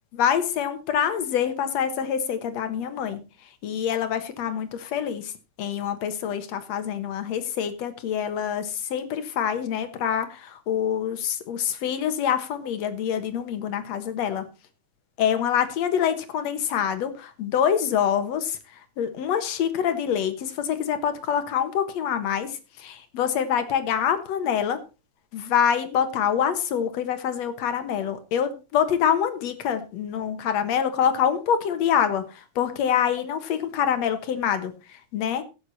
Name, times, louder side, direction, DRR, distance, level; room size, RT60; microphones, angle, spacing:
voice 1, 0.1-3.2 3.6-5.3 5.6-14.4 15.2-18.6 19.0-24.8 25.3-35.4, left 8 dB, 55° left, 10 dB, 2.2 m, -26 dB
16.5 x 8.2 x 4.1 m, 0.29 s
omnidirectional pair, 4.2 m